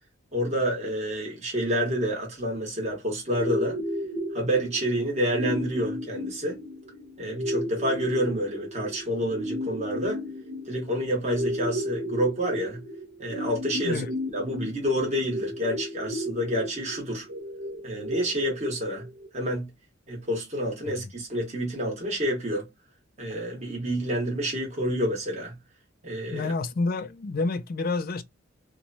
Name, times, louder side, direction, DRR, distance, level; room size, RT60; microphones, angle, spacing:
voice 1, 0.3-3.8 4.3-6.6 7.2-10.2 10.7-12.8 13.2-14.0 14.3-17.3 17.8-19.0 19.3-19.7 20.1-22.7 23.2-25.5 26.0-26.5, equal, 35° right, 1.2 m, -28 dB
sound 1, 3.3-19.3, equal, 55° right, 0.7 m, -34 dB
voice 2, 26.3-28.2, left 3 dB, 45° left, 0.4 m, -29 dB
2.9 x 2.2 x 2.6 m
head